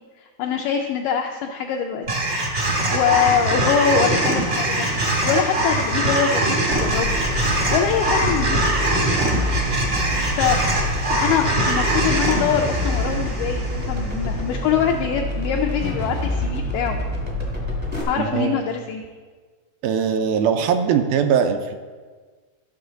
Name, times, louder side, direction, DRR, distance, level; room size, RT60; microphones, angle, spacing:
voice 1, 0.4-2.1 2.9-4.9 5.3-7.2 7.7-8.6 10.3-10.6 11.2-17.0 18.1-19.0, left 8 dB, 85° left, 2 dB, 1.8 m, -23 dB
sound 1, 2.1-14.4, right 1 dB, 50° right, 0.8 m, -22 dB
sound 2, 6.7-18.0, left 1 dB, 25° right, 0.3 m, -27 dB
voice 2, 18.2-18.6 19.8-21.8, right 7 dB, 80° right, 6 dB, 2.4 m, -21 dB
13.0 x 6.2 x 3.8 m, 1.4 s
omnidirectional pair, 4.3 m